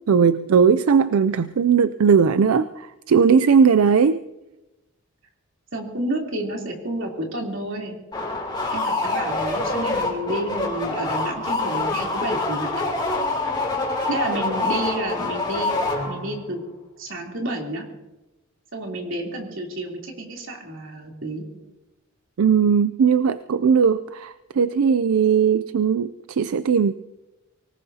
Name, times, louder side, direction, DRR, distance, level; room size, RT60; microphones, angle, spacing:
voice 1, 0.1-4.2 14.1-14.2 22.4-26.9, right 6 dB, 85° right, 14 dB, 0.4 m, -18 dB
voice 2, 5.7-8.0 8.7-12.7 14.1-15.8 16.0-16.6 17.0-17.9 18.7-21.4, right 1 dB, 65° right, 0 dB, 3.3 m, -30 dB
sound 1, 8.1-16.4, left 2 dB, 20° left, 2.8 m, -26 dB
25.0 x 18.5 x 2.8 m, 1.0 s
head